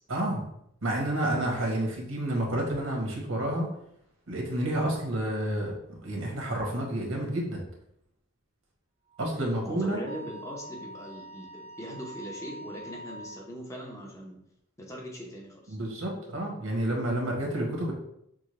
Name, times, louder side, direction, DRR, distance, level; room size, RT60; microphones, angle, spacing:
voice 1, 0.1-0.4 0.8-3.7 4.3-5.7 6.0-7.6 9.2-10.0 15.7-17.9, right 1 dB, 75° right, -1 dB, 1.3 m, -29 dB
Wind instrument woodwind instrument, 9.1-13.4, right 1 dB, 85° left, 0.8 m, -45 dB
voice 2, 9.6-14.4 14.8-15.8, equal, 15° left, -1 dB, 0.8 m, -41 dB
6.1 x 2.3 x 3.2 m, 0.75 s
head